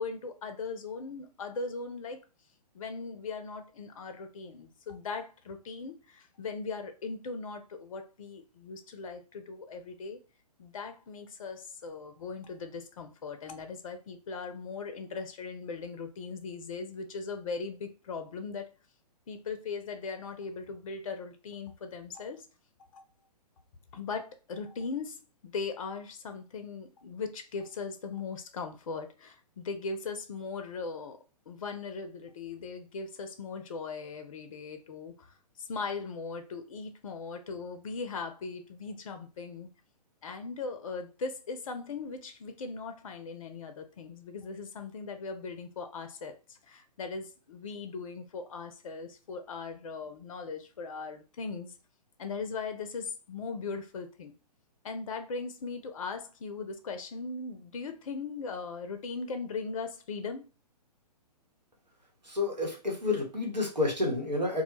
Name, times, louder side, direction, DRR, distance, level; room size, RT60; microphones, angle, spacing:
voice 1, 0.0-2.2 2.7-10.2 10.6-18.7 19.3-22.4 22.9-23.0 23.9-31.2 31.5-35.3 35.6-39.7 40.2-51.7 52.2-54.3 54.8-60.4, left 4 dB, 55° left, 0.4 m, -39 dB
voice 2, 62.2-64.6, left 3 dB, 90° right, 0.9 m, -29 dB
2.1 x 2.0 x 2.9 m
figure-of-eight pair, 120°, 21 cm